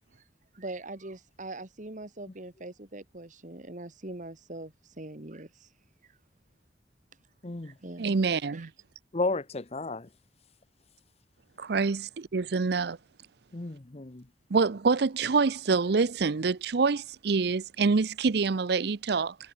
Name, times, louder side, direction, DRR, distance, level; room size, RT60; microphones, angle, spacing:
voice 1, 0.5-5.7 7.6-8.2 8.5-8.7, right 2 dB, 45° right, 1.8 m, -42 dB
voice 2, 7.4-7.7 9.1-10.1 13.5-14.3, left 2 dB, 35° left, 0.9 m, -32 dB
voice 3, 8.0-8.7 11.6-13.0 14.5-19.3, right 4 dB, 60° right, 0.6 m, -26 dB
head